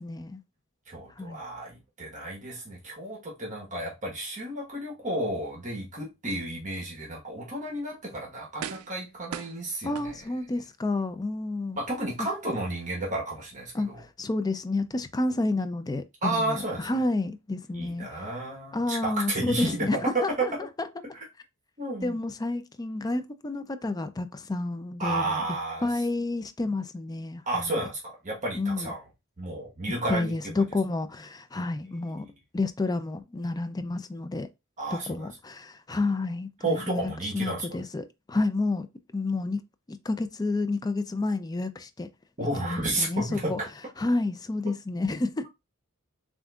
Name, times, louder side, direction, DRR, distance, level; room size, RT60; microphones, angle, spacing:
voice 1, 0.0-0.4 1.2-1.4 9.8-11.8 13.7-18.1 18.7-20.5 20.8-20.9 22.0-25.4 25.8-27.8 28.6-28.9 30.1-32.3 32.5-34.5 34.9-38.9 39.1-39.6 39.9-42.1 42.6-43.6 44.0-45.5, left 2 dB, 20° left, 0.4 m, -30 dB
voice 2, 0.9-10.1 11.8-14.0 16.2-16.9 17.7-20.5 21.8-22.1 25.0-25.9 27.5-29.0 29.4-30.3 34.8-35.3 36.6-37.6 42.4-43.5, right 2 dB, 35° right, 1.1 m, -32 dB
sound 1, 7.7-7.8 8.6-9.0 9.3-10.6 11.1-11.2, right 8 dB, 90° right, 0.4 m, -39 dB
7.2 x 2.6 x 2.3 m
head